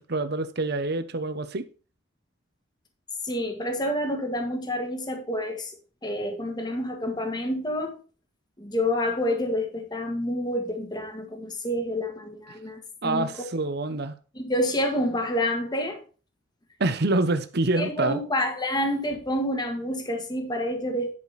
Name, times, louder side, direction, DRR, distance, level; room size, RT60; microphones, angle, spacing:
voice 1, 0.0-1.7 13.0-14.1 16.8-18.2, right 2 dB, 60° right, 0.9 m, -26 dB
voice 2, 3.2-5.7 6.0-8.0 8.6-13.5 14.3-16.0 17.7-21.1, left 1 dB, 20° left, 1.6 m, -28 dB
11.0 x 5.1 x 4.1 m
head